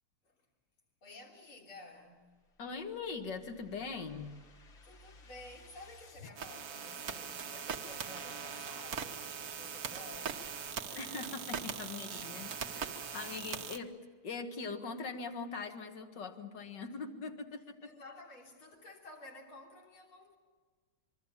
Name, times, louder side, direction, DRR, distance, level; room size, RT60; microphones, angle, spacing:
voice 1, 1.0-2.4 4.8-12.1 17.8-20.3, left 2 dB, 90° left, 4.2 m, -53 dB
sound 1, 2.3-6.4, left 2 dB, 35° left, 1.4 m, -57 dB
voice 2, 2.6-4.3 11.0-14.0 14.2-17.9, left 4 dB, 60° left, 2.3 m, -42 dB
sound 2, 6.4-13.8, right 6 dB, 50° right, 1.4 m, -41 dB
25.0 x 24.0 x 7.2 m
omnidirectional pair, 2.3 m